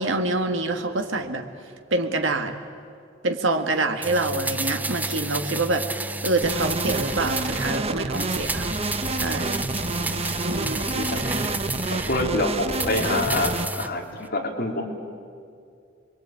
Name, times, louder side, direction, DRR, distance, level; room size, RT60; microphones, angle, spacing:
voice 1, 0.0-1.4 1.9-2.5 3.2-5.9 6.2-8.7 9.2-9.6 10.4-10.9, right 2 dB, 75° right, 6 dB, 1.9 m, -26 dB
sound 1, 4.0-7.8 8.1-12.3 12.7-13.9 14.2-14.3, right 2 dB, 10° right, 0.6 m, -31 dB
sound 2, 6.4-13.7, right 2 dB, 30° right, 1.0 m, -29 dB
voice 2, 10.9-11.3 11.9-13.5 13.8-14.8, left 2 dB, 50° left, 0 dB, 3.7 m, -26 dB
27.0 x 22.5 x 9.1 m, 2.3 s
head